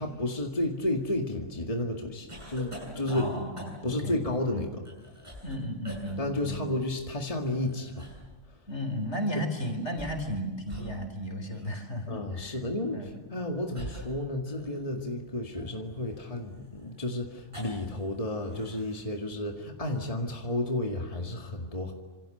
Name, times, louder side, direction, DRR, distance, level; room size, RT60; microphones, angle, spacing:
voice 1, 0.0-3.3 3.8-4.8 6.2-8.1 12.1-21.9, left 1 dB, 30° left, 2 dB, 2.2 m, -32 dB
sound 1, 2.3-4.0 4.8-5.6 5.8-6.2 7.3-8.3 9.8-10.4 10.7-10.9 11.5-11.7 12.8-13.0 13.7-15.0 15.5-18.0 18.3-19.0, equal, 25° right, 7.9 m, -45 dB
voice 2, 3.1-4.2 4.5-4.6 5.4-6.6 8.7-12.6 12.9-13.2, equal, 65° left, 6 dB, 4.4 m, -34 dB
27.0 x 26.5 x 7.9 m, 1.3 s
omnidirectional pair, 1.2 m